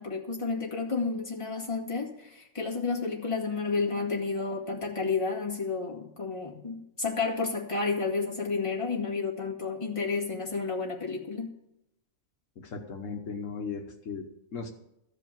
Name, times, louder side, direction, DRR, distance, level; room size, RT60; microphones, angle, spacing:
voice 1, 0.0-11.5, left 4 dB, 25° left, -2 dB, 2.0 m, -31 dB
voice 2, 12.6-14.3 14.5-14.7, left 5 dB, 75° left, 3 dB, 1.4 m, -37 dB
14.5 x 5.0 x 9.1 m, 0.85 s
omnidirectional pair, 1.4 m